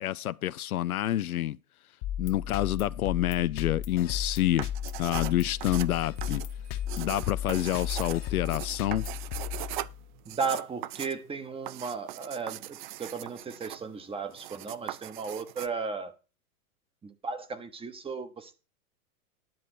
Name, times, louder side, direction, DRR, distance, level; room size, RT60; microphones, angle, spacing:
voice 1, 0.0-1.6 2.2-4.7 5.0-6.4 7.0-9.0, left 13 dB, 70° left, 0.6 m, -28 dB
sound 1, 2.0-10.2, left 10 dB, 40° left, 1.1 m, -35 dB
sound 2, 4.5-15.7, right 14 dB, 35° right, 0.4 m, -40 dB
Bell, 5.5-8.6, right 7 dB, 70° right, 6.9 m, -56 dB
voice 2, 10.3-16.1 17.0-18.5, right 5 dB, 10° right, 1.1 m, -35 dB
10.5 x 7.3 x 4.3 m
hypercardioid pair, 110°, 45 cm